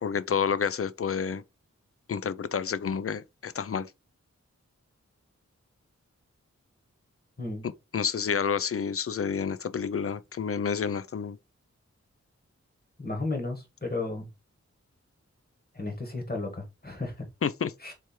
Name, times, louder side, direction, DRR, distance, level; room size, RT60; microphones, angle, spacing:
voice 1, 0.0-1.4 2.1-3.9 7.9-11.4 17.4-17.7, left 6 dB, 50° left, 0.4 m, -29 dB
voice 2, 13.0-14.3 15.7-17.3 17.8-17.9, left 2 dB, 30° left, 1.7 m, -33 dB
3.5 x 3.1 x 4.4 m
wide cardioid pair, 60°, 29 cm